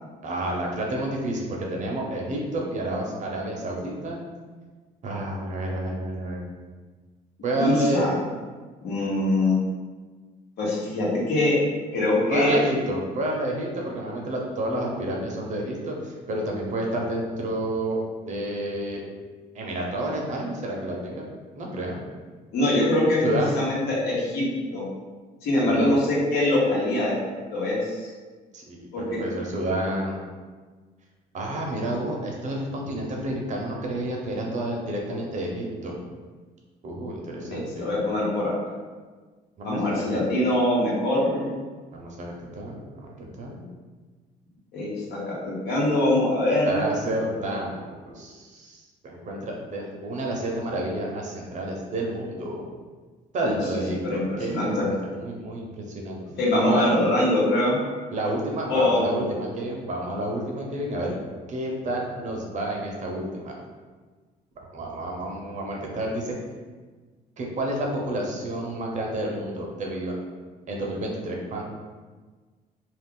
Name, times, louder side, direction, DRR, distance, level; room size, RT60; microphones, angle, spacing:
voice 1, 0.2-4.2 5.0-6.4 7.4-8.1 12.2-18.0 18.3-19.0 19.5-21.2 21.6-22.0 23.2-23.5 25.6-25.9 28.5-30.2 31.3-35.9 36.8-37.9 39.6-40.3 41.9-43.6 46.6-52.6 53.3-56.2 56.5-56.9 58.1-61.1 61.5-63.6 64.7-66.3 67.4-70.2 70.7-71.6, right 1 dB, 45° right, -1 dB, 0.7 m, -30 dB
voice 2, 7.6-8.1 8.8-9.6 10.6-11.6 11.9-12.6 22.5-24.8 25.4-27.1 27.5-28.0 28.9-29.2 37.5-38.5 39.6-41.5 44.7-46.9 53.4-53.6 54.0-54.8 56.4-57.8 58.7-59.0, left 1 dB, 75° left, -5 dB, 1.0 m, -23 dB
2.4 x 2.4 x 3.7 m, 1.4 s
cardioid pair, 110°, 17 cm